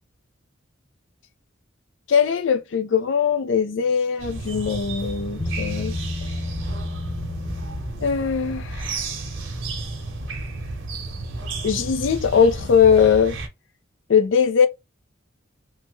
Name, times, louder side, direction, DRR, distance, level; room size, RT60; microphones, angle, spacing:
voice 1, 2.1-5.9 8.0-8.9 11.6-13.4 14.1-14.7, left 7 dB, 70° left, 0.4 m, -20 dB
sound 1, 4.2-13.5, right 2 dB, 70° right, 0.8 m, -32 dB
Bass guitar, 5.4-8.8, left 2 dB, 30° left, 0.7 m, -32 dB
3.2 x 2.1 x 3.1 m
head